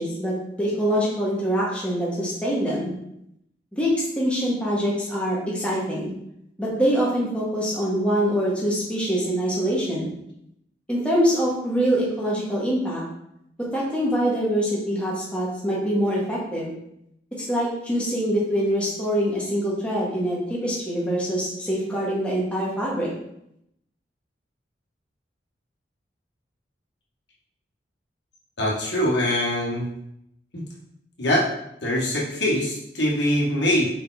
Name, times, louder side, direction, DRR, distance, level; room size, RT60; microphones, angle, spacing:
voice 1, 0.0-2.9 3.7-6.1 6.6-10.1 10.9-13.0 13.7-16.7 17.4-23.1, equal, 5° left, -6 dB, 1.7 m, -24 dB
voice 2, 28.6-29.8 30.5-30.6 31.2-31.5 31.8-33.9, left 1 dB, 75° left, -4 dB, 1.7 m, -23 dB
5.2 x 4.7 x 4.0 m, 0.78 s
head